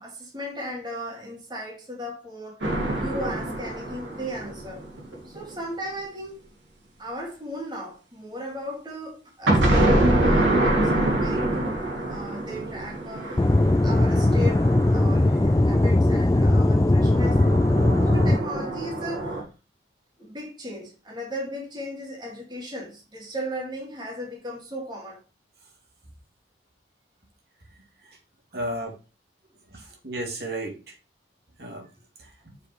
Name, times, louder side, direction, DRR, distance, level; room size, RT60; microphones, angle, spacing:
voice 1, 0.0-4.8 5.2-6.4 7.0-13.4 13.8-14.6 14.9-17.4 18.1-19.5 20.2-25.2, equal, 25° right, 2.1 m, -36 dB
sound 1, 2.6-5.4 9.5-15.7 17.0-19.4, right 1 dB, 80° right, 3.0 m, -25 dB
Aircraft / Engine, 13.4-18.4, left 1 dB, 15° left, 0.3 m, -19 dB
voice 2, 28.5-29.0 29.7-31.0 31.6-31.9 32.2-32.5, right 1 dB, 60° right, 2.4 m, -34 dB
6.7 x 5.3 x 4.5 m
head